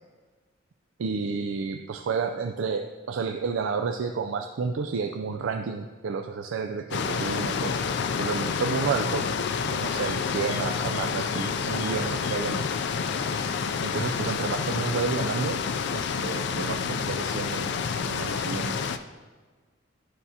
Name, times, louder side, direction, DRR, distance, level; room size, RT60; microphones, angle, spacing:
voice 1, 1.0-7.7 8.2-9.2 9.7-12.7 13.8-15.6 15.9-17.7 18.1-18.7, right 5 dB, 85° right, 5 dB, 0.4 m, -30 dB
sound 1, 6.9-19.0, left 6 dB, 60° left, 0.4 m, -28 dB
11.5 x 5.5 x 2.8 m, 1.4 s
head